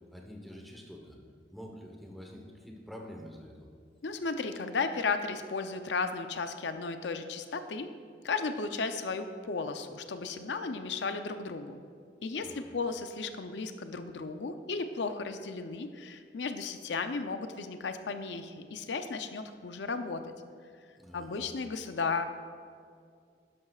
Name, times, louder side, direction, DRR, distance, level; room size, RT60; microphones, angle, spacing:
voice 1, 0.1-1.2 1.5-3.7 12.4-12.6 21.0-21.4, equal, ahead, 0 dB, 1.0 m, -47 dB
voice 2, 4.0-7.9 8.2-11.8 12.2-20.3 21.1-22.2, left 4 dB, 90° left, 8 dB, 0.5 m, -34 dB
12.0 x 10.5 x 2.4 m, 2.2 s
head